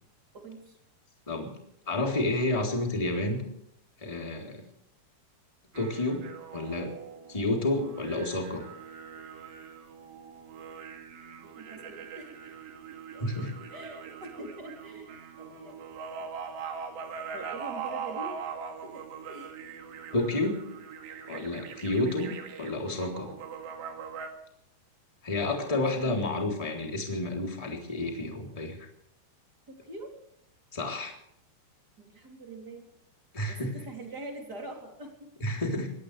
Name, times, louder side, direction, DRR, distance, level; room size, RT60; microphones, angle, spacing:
voice 1, 0.3-0.8 11.5-12.6 13.1-13.2 13.7-15.8 17.3-18.4 18.8-19.5 25.9-26.2 29.7-30.1 32.0-32.9 33.5-35.3, right 2 dB, 25° right, 2 dB, 2.9 m, -44 dB
voice 2, 1.9-3.4 4.0-4.6 5.7-6.9 7.3-8.7 13.2-13.5 20.1-20.6 21.3-23.3 25.2-28.9 30.7-31.1 33.3-33.8 35.4-35.9, left 2 dB, 10° left, 1 dB, 2.6 m, -30 dB
sound 1, 5.7-24.3, right 6 dB, 65° right, 4.0 m, -42 dB
24.0 x 17.5 x 3.4 m, 0.74 s
omnidirectional pair, 5.8 m